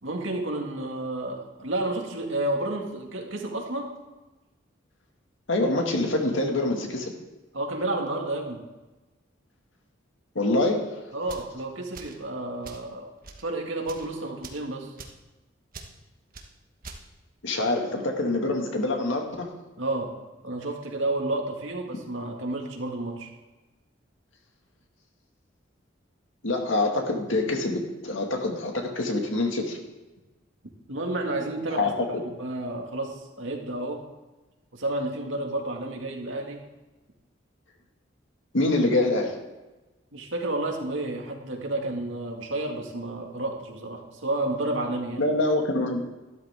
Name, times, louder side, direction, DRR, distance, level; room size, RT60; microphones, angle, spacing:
voice 1, 0.0-3.9 7.5-8.7 11.1-13.1 13.4-14.9 19.8-20.1 20.4-23.3 30.9-34.0 34.7-36.6 40.1-45.3, right 2 dB, 80° right, 1 dB, 2.1 m, -31 dB
voice 2, 5.5-7.1 10.4-10.9 17.4-19.5 26.4-29.8 31.7-32.1 38.5-39.4 45.2-46.1, left 2 dB, 75° left, 2 dB, 2.0 m, -25 dB
sound 1, 11.2-11.5 11.9-12.2 12.6-12.9 13.2-13.5 13.8-14.1 14.4-14.7 15.0-15.2 15.7-15.9 16.3-16.5 16.8-17.0, right 4 dB, 50° right, 1.3 m, -43 dB
12.5 x 12.5 x 3.6 m, 1.1 s
head